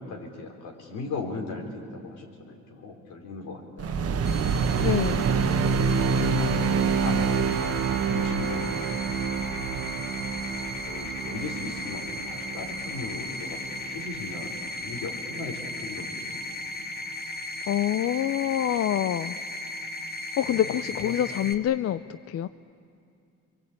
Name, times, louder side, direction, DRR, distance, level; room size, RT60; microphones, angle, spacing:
voice 1, 0.0-4.2 6.2-7.4 8.0-9.0 9.3-9.9 10.9-16.4 20.4-21.2, left 3 dB, 85° left, 1 dB, 4.6 m, -38 dB
sound 1, 3.8-14.3, right 6 dB, 50° right, 1.1 m, -27 dB
sound 2, 4.3-21.5, left 1 dB, 30° left, 2.2 m, -37 dB
voice 2, 4.8-5.2 17.7-19.4 20.4-22.0 22.3-22.5, left 11 dB, 55° left, 14 dB, 0.5 m, -26 dB
24.0 x 24.0 x 8.7 m, 2.5 s
cardioid pair, 90°, 30 cm